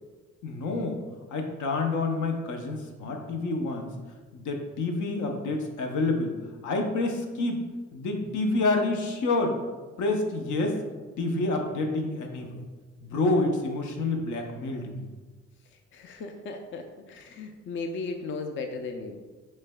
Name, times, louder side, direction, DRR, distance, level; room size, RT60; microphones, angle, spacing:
voice 1, 0.4-1.0 1.3-3.9 4.3-6.4 6.6-7.6 7.9-9.6 10.0-10.8 11.2-12.6 13.0-15.1, left 2 dB, 75° left, 3 dB, 0.8 m, -28 dB
voice 2, 15.7-19.2, left 3 dB, 40° left, 5 dB, 0.4 m, -36 dB
6.4 x 3.3 x 2.2 m, 1.3 s
cardioid pair, 90°, 30 cm